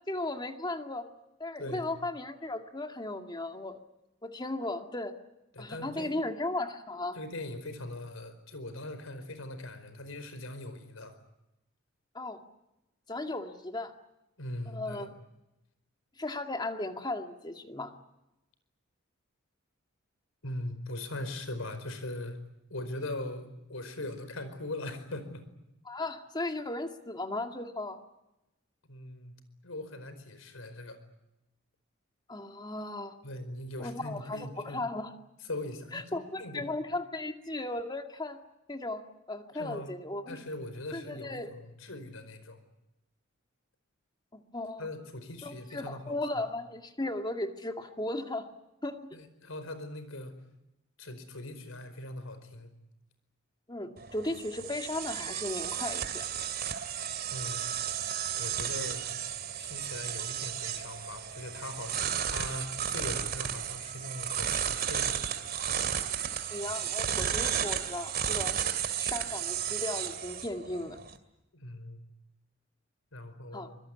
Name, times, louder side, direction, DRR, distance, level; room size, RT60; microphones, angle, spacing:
voice 1, 0.1-1.0 1.4-3.8 4.2-5.1 5.6-7.2 12.1-12.4 13.1-13.9 14.7-15.1 16.2-17.9 25.9-28.0 32.3-33.1 33.8-35.1 35.9-38.4 38.7-39.0 39.3-40.5 40.9-41.5 44.3-44.9 45.4-48.5 48.8-49.0 53.7-56.3 66.5-68.7 69.0-71.0 73.5-73.7, left 2 dB, 20° left, 6 dB, 2.0 m, -36 dB
voice 2, 5.5-6.1 7.1-11.2 14.4-15.1 20.4-22.4 22.7-25.5 28.9-29.4 29.6-31.0 33.2-34.8 35.5-36.7 39.5-40.0 40.3-42.6 44.8-46.4 49.1-50.3 51.0-52.7 57.3-57.6 58.4-59.1 59.6-62.0 62.3-65.2 71.5-72.0 73.1-73.8, left 1 dB, 85° left, 11 dB, 4.8 m, -40 dB
sound 1, 54.0-71.2, right 9 dB, 50° right, 2.3 m, -33 dB
25.0 x 21.5 x 9.6 m, 0.93 s
head